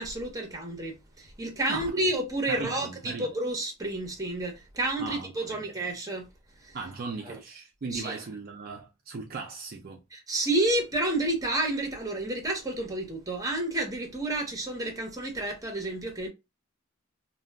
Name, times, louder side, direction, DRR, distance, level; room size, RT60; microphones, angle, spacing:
voice 1, 0.0-6.3 6.6-6.8 7.3-7.4 7.9-8.2 10.1-16.3, right 1 dB, 15° right, 0.8 m, -30 dB
voice 2, 2.5-3.3 5.0-5.6 6.7-10.0, right 4 dB, 45° right, 0.4 m, -38 dB
2.2 x 2.2 x 3.4 m
head